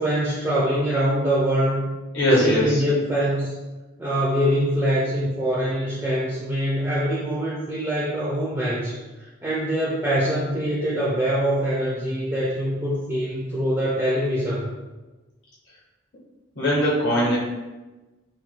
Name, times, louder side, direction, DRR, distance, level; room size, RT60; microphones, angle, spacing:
voice 1, 0.0-1.9 2.4-3.5 4.0-14.7, equal, 10° right, -7 dB, 0.4 m, -24 dB
voice 2, 2.1-2.8 16.6-17.4, equal, 55° left, -6 dB, 0.7 m, -20 dB
2.8 x 2.0 x 3.2 m, 1.2 s
head